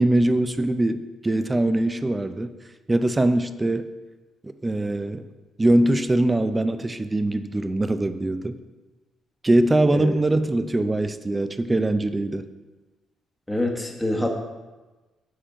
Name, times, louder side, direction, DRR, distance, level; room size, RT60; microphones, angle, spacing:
voice 1, 0.0-2.5 2.9-3.9 4.4-5.2 5.6-8.6 9.4-12.5, right 1 dB, 20° right, 11 dB, 0.4 m, -22 dB
voice 2, 13.5-14.4, left 1 dB, 10° left, 1 dB, 1.1 m, -25 dB
7.6 x 4.3 x 5.0 m, 1.2 s
cardioid pair, 90°, 0 cm